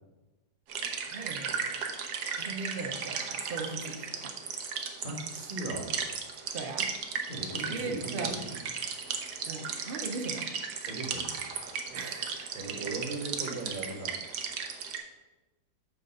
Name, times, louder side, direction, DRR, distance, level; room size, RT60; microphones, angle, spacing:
sound 1, 0.7-15.0, right 6 dB, 65° right, 1.4 m, -36 dB
voice 1, 1.1-1.8 2.4-4.3 6.5-6.9 7.7-8.4 9.4-10.5 11.9-12.6, right 4 dB, 85° right, 4 dB, 0.4 m, -39 dB
voice 2, 5.0-5.9 7.3-8.6 10.9-11.3 11.9-14.1, right 2 dB, 30° right, 1 dB, 1.4 m, -38 dB
7.5 x 4.0 x 6.4 m, 1.1 s
omnidirectional pair, 2.0 m